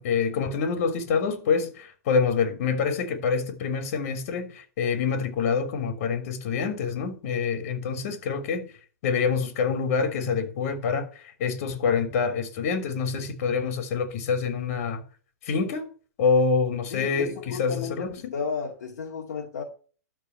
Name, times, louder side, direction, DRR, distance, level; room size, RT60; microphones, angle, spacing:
voice 1, 0.0-8.7 9.0-11.1 11.4-15.0 15.4-15.9 16.2-18.3, left 5 dB, 55° left, 3.3 m, -26 dB
voice 2, 16.9-19.6, left 6 dB, 70° left, 2.2 m, -33 dB
13.0 x 4.7 x 8.2 m
hypercardioid pair, 120°, 9 cm